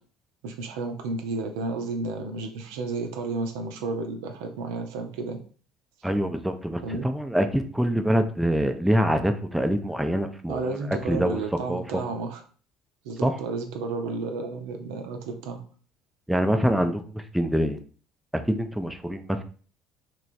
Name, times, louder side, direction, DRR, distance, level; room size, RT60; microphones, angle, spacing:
voice 1, 0.4-5.4 6.8-7.1 10.5-12.4 13.0-15.6, right 3 dB, 70° right, 4 dB, 0.5 m, -32 dB
voice 2, 6.0-11.4 11.7-12.0 13.2-13.3 16.3-17.8 18.3-19.4, equal, 5° right, 6 dB, 0.4 m, -25 dB
3.1 x 2.9 x 2.6 m, 0.41 s
figure-of-eight pair, 60°, 2 cm